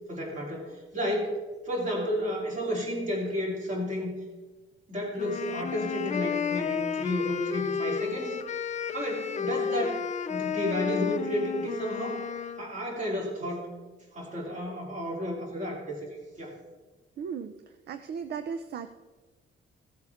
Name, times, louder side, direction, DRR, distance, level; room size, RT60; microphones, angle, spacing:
voice 1, 0.1-1.4 1.6-4.1 4.9-8.4 8.9-10.0 10.3-12.2 12.6-13.7 14.1-16.0 16.4-16.5, equal, 35° right, -2 dB, 3.1 m, -32 dB
sound 1, 5.2-12.6, left 7 dB, 35° left, 0.4 m, -32 dB
voice 2, 17.2-17.5 17.9-18.9, right 6 dB, 55° right, 9 dB, 0.5 m, -36 dB
15.5 x 8.0 x 3.5 m, 1.3 s
wide cardioid pair, 170°, 21 cm